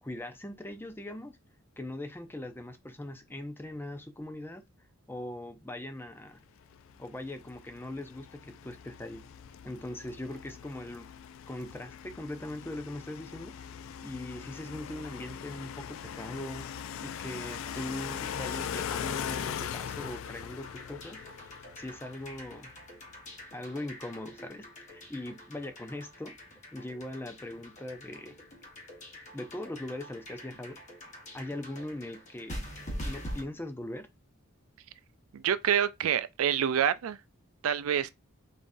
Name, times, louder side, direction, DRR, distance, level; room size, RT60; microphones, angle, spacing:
voice 1, 0.0-1.4 1.8-4.6 5.1-6.4 7.0-9.3 9.6-11.1 11.5-16.7 17.0-21.2 21.7-22.7 23.5-26.4 26.7-28.4 29.3-30.8 31.3-32.6 33.0-34.1, left 1 dB, 10° left, 0.4 m, -40 dB
sound 1, 6.7-22.9, left 8 dB, 75° left, 0.3 m, -41 dB
sound 2, 17.5-33.4, equal, 35° left, 1.1 m, -46 dB
voice 2, 35.3-37.2 37.6-38.1, right 9 dB, 90° right, 0.4 m, -27 dB
4.0 x 3.8 x 2.6 m
head